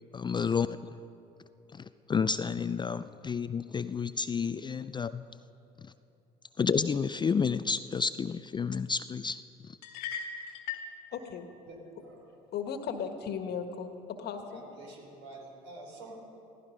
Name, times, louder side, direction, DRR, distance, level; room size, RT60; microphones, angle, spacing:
voice 1, 0.1-0.7 2.1-5.2 6.6-9.4, left 5 dB, 25° left, 13 dB, 0.4 m, -30 dB
sound 1, 9.8-10.9, left 6 dB, 80° left, 1.6 m, -37 dB
voice 2, 11.1-11.5 12.5-14.6, left 7 dB, 55° left, 6 dB, 1.6 m, -36 dB
voice 3, 11.7-12.2 14.5-16.1, right 2 dB, 70° right, 0 dB, 4.6 m, -48 dB
16.0 x 15.0 x 5.2 m, 2.9 s
hypercardioid pair, 65°, 19 cm